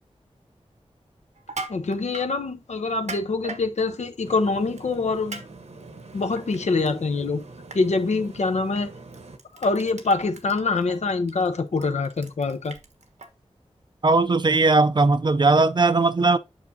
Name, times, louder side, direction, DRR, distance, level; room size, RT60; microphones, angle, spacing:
Crushing, 1.4-2.3 2.9-3.6 4.8-4.9 5.3-5.4 5.8-6.9 7.2-7.4 7.7-7.8 8.7-8.8 9.1-13.3, right 3 dB, 90° right, 1.2 m, -38 dB
voice 1, 1.7-5.4 6.1-7.4 7.7-8.9 9.6-12.8, left 3 dB, 80° left, 0.8 m, -25 dB
sound 1, 4.2-9.4, right 3 dB, 75° right, 1.1 m, -44 dB
voice 2, 14.0-16.4, right 3 dB, 40° right, 0.4 m, -18 dB
8.2 x 5.9 x 2.7 m
wide cardioid pair, 75°, 12 cm